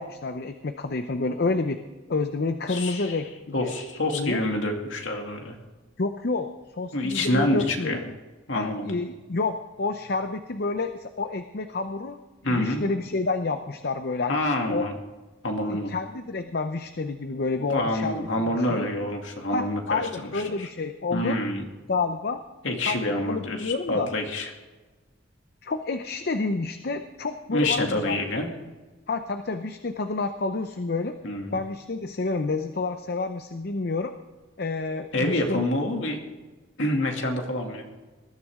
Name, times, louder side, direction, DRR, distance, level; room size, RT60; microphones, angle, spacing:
voice 1, 0.0-1.8 2.1-3.7 4.1-4.4 6.0-8.1 8.5-14.4 14.7-14.9 15.7-18.2 18.5-18.9 19.5-21.4 21.9-22.4 22.8-24.1 25.6-28.5 29.1-31.1 31.5-34.1 34.6-35.6, left 3 dB, 50° left, 8 dB, 0.7 m, -29 dB
voice 2, 2.7-3.2 3.5-5.6 6.9-8.0 8.5-8.9 12.4-12.8 14.3-14.9 15.4-15.9 17.7-20.0 20.3-20.7 21.1-21.6 22.6-24.5 27.5-28.5 31.2-31.5 35.1-36.2 36.8-37.9, left 1 dB, 70° left, 2 dB, 2.5 m, -27 dB
20.0 x 12.5 x 3.7 m, 1.3 s
head